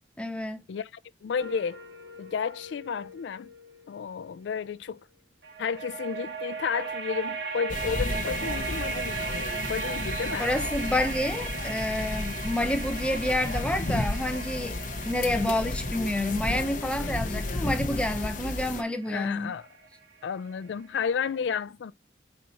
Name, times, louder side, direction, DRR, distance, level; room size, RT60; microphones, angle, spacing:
voice 1, 0.2-0.6 10.4-14.8 15.0-19.5, left 1 dB, 5° left, 0.6 m, -29 dB
voice 2, 1.2-1.8 2.2-3.5 3.9-5.0 5.6-10.5 19.1-19.7 20.2-21.9, left 6 dB, 85° left, 0.4 m, -32 dB
sound 1, 1.4-4.7 5.4-20.3, right 5 dB, 75° right, 1.1 m, -38 dB
sound 2, 7.7-18.8, left 2 dB, 50° left, 0.9 m, -33 dB
4.7 x 4.1 x 5.5 m
head